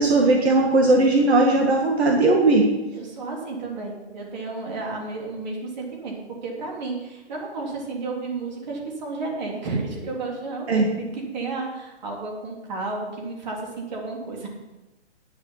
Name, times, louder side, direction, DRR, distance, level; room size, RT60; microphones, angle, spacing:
voice 1, 0.0-2.7 10.7-10.9, right 2 dB, 65° right, 1 dB, 1.9 m, -18 dB
voice 2, 2.9-6.1 6.4-13.6 13.9-14.5, right 3 dB, 40° right, -1 dB, 3.3 m, -32 dB
10.5 x 10.0 x 5.7 m, 1.1 s
hypercardioid pair, 165°, 34 cm